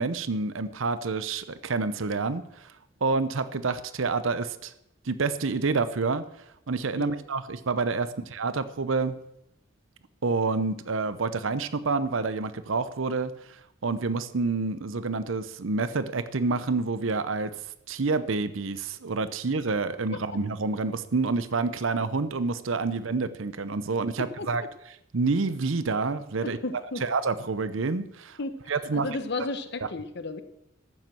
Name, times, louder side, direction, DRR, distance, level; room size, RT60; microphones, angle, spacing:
voice 1, 0.0-2.7 3.0-4.7 5.0-6.2 6.7-9.2 10.2-17.5 17.9-24.6 25.1-26.6 27.0-28.4 28.7-29.1, right 4 dB, 70° right, 14 dB, 0.7 m, -28 dB
voice 2, 24.2-24.5 26.4-27.0 28.4-28.6 28.9-30.4, left 3 dB, 55° left, 10 dB, 1.1 m, -34 dB
13.5 x 7.5 x 7.6 m, 0.80 s
head